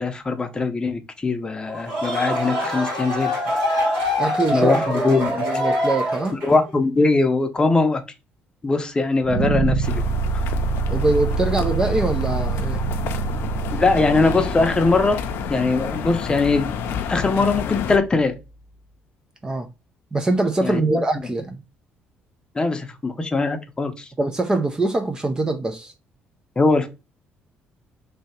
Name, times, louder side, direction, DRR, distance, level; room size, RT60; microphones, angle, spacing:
voice 1, 0.0-3.4 4.5-5.4 6.4-8.0 8.6-10.0 13.7-15.2 15.5-16.7 17.1-18.4 20.6-21.0 22.5-24.1 26.6-26.9, left 3 dB, 20° left, 0.7 m, -21 dB
sound 1, 1.7-6.7, equal, 85° right, 2.1 m, -24 dB
voice 2, 4.2-6.4 10.8-12.8 19.4-19.7 20.1-21.6 24.2-25.9, right 2 dB, 20° right, 0.4 m, -23 dB
sound 2, 9.2-18.3, right 5 dB, 50° right, 0.8 m, -27 dB
sound 3, 9.8-18.0, left 8 dB, 75° left, 0.5 m, -30 dB
3.2 x 2.8 x 4.2 m
cardioid pair, 95°, 4 cm